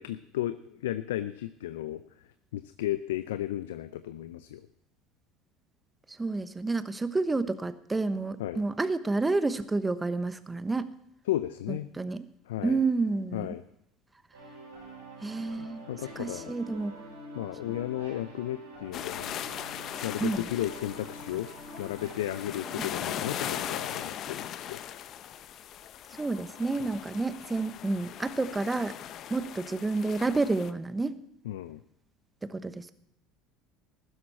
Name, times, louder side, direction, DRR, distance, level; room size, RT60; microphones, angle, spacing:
voice 1, 0.0-2.0 2.5-4.6 8.4-8.6 11.3-11.9 12.5-12.8 13.3-13.6 15.6-16.5 17.3-19.3 20.0-21.5 21.8-24.8 31.5-31.8, left 13 dB, 80° left, 12 dB, 0.5 m, -34 dB
voice 2, 6.1-10.9 11.7-12.2 12.6-13.5 15.2-15.8 16.2-16.9 20.2-20.5 22.8-22.9 26.1-29.0 29.3-31.2 32.4-32.9, right 3 dB, 15° right, 13 dB, 1.0 m, -30 dB
sound 1, 14.3-24.0, right 1 dB, 90° right, 4.8 m, -46 dB
sound 2, 18.9-30.7, left 10 dB, 50° left, 0.8 m, -39 dB
15.5 x 12.5 x 4.3 m, 0.80 s
hypercardioid pair, 75°, 0 cm